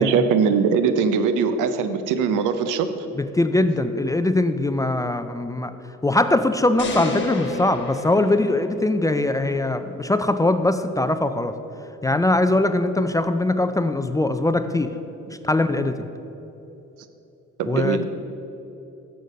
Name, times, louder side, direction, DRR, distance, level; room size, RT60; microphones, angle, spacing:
voice 1, 0.0-2.9 8.2-8.3 12.1-12.2 17.6-18.1, right 6 dB, 90° right, 10 dB, 0.6 m, -21 dB
voice 2, 3.2-5.7 6.0-11.5 12.0-14.9 15.4-16.0 17.7-18.1, left 2 dB, 10° left, 10 dB, 0.3 m, -21 dB
sound 1, 6.8-9.1, left 3 dB, 40° left, 1.4 m, -30 dB
6.8 x 6.4 x 6.4 m, 3.0 s
cardioid pair, 90°, 30 cm